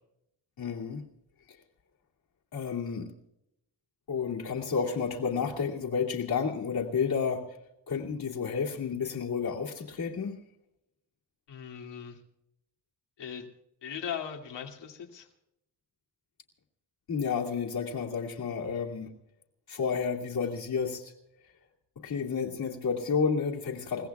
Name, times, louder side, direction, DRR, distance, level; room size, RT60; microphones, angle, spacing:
voice 1, 0.6-1.1 2.5-3.1 4.1-7.4 7.9-10.4 17.1-19.1 19.7-21.1 22.0-24.1, left 6 dB, 60° left, -4 dB, 2.4 m, -31 dB
voice 2, 11.5-12.2 13.2-13.5 13.8-15.3, left 8 dB, 85° left, 3 dB, 2.5 m, -39 dB
29.5 x 17.0 x 2.4 m, 0.81 s
wide cardioid pair, 175°, 41 cm